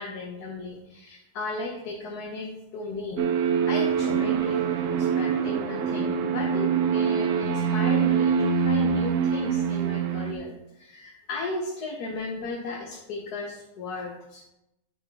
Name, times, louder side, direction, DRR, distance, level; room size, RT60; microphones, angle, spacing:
voice 1, 0.0-3.3 3.7-4.6 5.0-14.4, left 3 dB, 90° left, 0 dB, 1.5 m, -35 dB
sound 1, 3.2-10.3, right 7 dB, 65° right, 0.9 m, -24 dB
10.5 x 5.9 x 3.4 m, 0.89 s
omnidirectional pair, 1.6 m